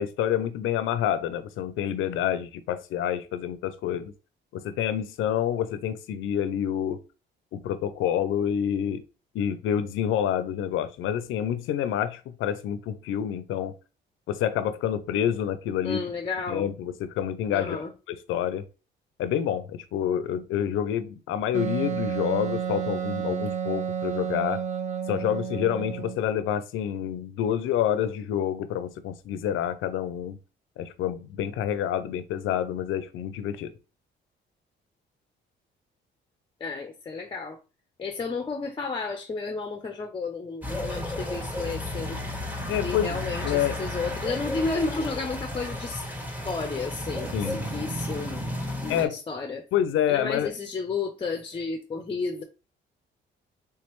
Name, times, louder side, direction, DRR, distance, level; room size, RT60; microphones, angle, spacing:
voice 1, 0.0-4.1 4.5-7.0 7.5-9.0 9.3-13.7 14.3-16.0 16.5-18.6 19.2-24.6 25.1-30.4 30.8-33.7 42.7-43.8 47.3-47.6 48.9-49.2 49.7-50.5, left 10 dB, 85° left, 0.5 m, -28 dB
voice 2, 15.8-16.7 17.5-17.9 36.6-37.6 38.0-42.2 42.8-46.0 46.4-48.5 48.8-49.6 50.1-52.4, left 4 dB, 25° left, 0.5 m, -32 dB
Wind instrument woodwind instrument, 21.5-26.2, right 8 dB, 35° right, 0.5 m, -31 dB
sound 1, 40.6-49.1, left 1 dB, 10° right, 1.3 m, -33 dB
3.4 x 3.2 x 3.0 m
cardioid pair, 90°, 20 cm